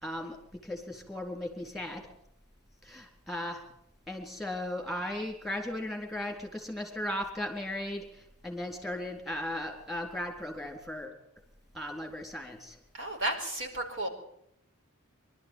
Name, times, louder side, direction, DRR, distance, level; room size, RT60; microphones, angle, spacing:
voice 1, 0.0-2.0 2.8-3.7 4.1-11.2 11.7-12.8, left 1 dB, ahead, 3 dB, 4.0 m, -37 dB
voice 2, 12.9-14.1, right 1 dB, 60° right, 3 dB, 5.0 m, -33 dB
24.5 x 13.0 x 9.3 m, 0.74 s
head